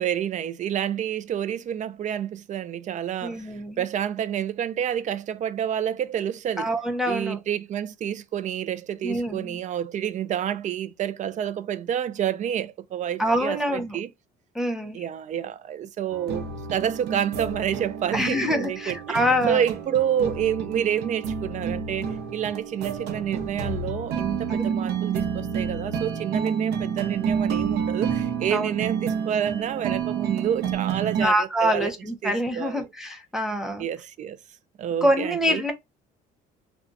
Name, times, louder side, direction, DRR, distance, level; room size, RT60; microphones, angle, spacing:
voice 1, 0.0-6.7 7.1-14.1 14.9-19.2 19.5-31.9 32.2-32.9 33.8-34.4 34.8-35.6, right 9 dB, 45° right, 0.4 m, -28 dB
voice 2, 3.2-3.8 6.6-7.4 9.0-9.6 13.2-14.0 14.5-15.1 18.1-19.6 24.7-24.8 28.5-28.7 31.2-33.9 35.0-35.7, equal, 5° right, 0.6 m, -25 dB
sound 1, 16.1-31.3, right 6 dB, 85° right, 0.8 m, -29 dB
2.5 x 2.3 x 3.9 m
cardioid pair, 110°, 17 cm